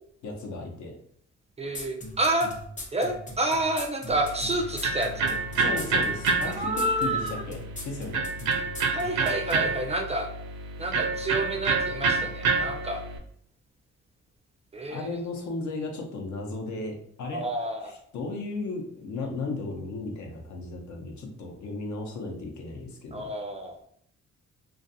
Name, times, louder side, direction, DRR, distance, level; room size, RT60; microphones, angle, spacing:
voice 1, 0.2-1.0 5.6-7.2 7.5-7.6 7.8-8.2 14.9-17.4 17.9-23.3, left 3 dB, 70° left, 1 dB, 0.8 m, -35 dB
voice 2, 1.6-2.5 2.9-5.4 6.4-7.4 8.9-10.3 10.8-13.0 14.7-15.2 17.3-17.9 23.1-23.8, right 1 dB, 20° right, 4 dB, 0.4 m, -29 dB
sound 1, 1.7-9.6, left 1 dB, 25° left, 0.8 m, -39 dB
Electric guitar, 4.1-13.2, right 4 dB, 80° right, 0.6 m, -28 dB
2.5 x 2.4 x 2.7 m, 0.65 s
cardioid pair, 90°, 30 cm